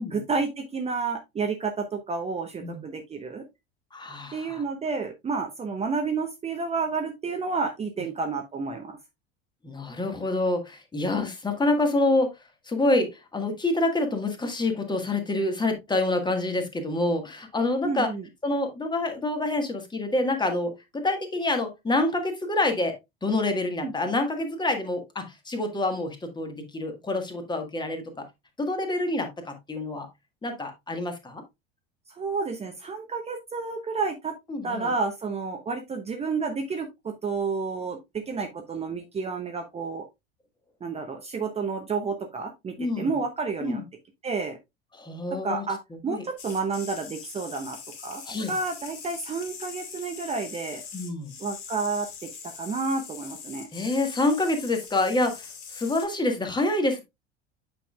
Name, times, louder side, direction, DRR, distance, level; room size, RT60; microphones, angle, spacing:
voice 1, 0.0-3.4 4.3-9.0 17.8-18.3 23.8-24.1 32.1-34.3 34.6-40.1 40.8-43.8 44.2-44.6 45.3-47.8 48.0-48.2 48.5-50.8 51.4-52.3 52.6-53.7, right 4 dB, 20° right, 4 dB, 0.9 m, -30 dB
voice 2, 3.9-4.6 9.6-12.3 12.7-18.1 18.4-23.0 23.2-28.2 28.6-30.1 30.4-31.4 34.5-34.9 42.8-43.1 43.6-43.8 44.9-45.6 46.1-46.2 48.2-48.5 50.9-51.3 53.7-57.0, left 2 dB, 15° left, 5 dB, 1.6 m, -27 dB
sound 1, 46.4-56.1, left 6 dB, 50° left, 2.5 m, -42 dB
8.3 x 5.6 x 2.3 m, 0.21 s
figure-of-eight pair, 70°, 31 cm